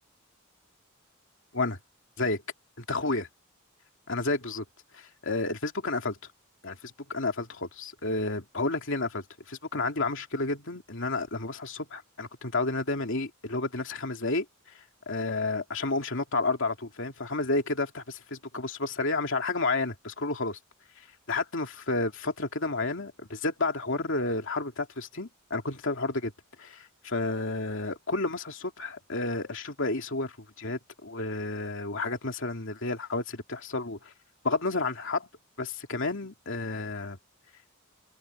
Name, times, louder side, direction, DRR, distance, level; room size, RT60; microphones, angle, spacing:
voice 1, 2.8-3.3 4.1-4.6 4.9-6.2 6.6-14.4 15.1-20.6 21.3-26.3 26.6-34.1 34.4-35.3 35.6-37.2, left 3 dB, 65° left, 2.8 m, -31 dB
open air
head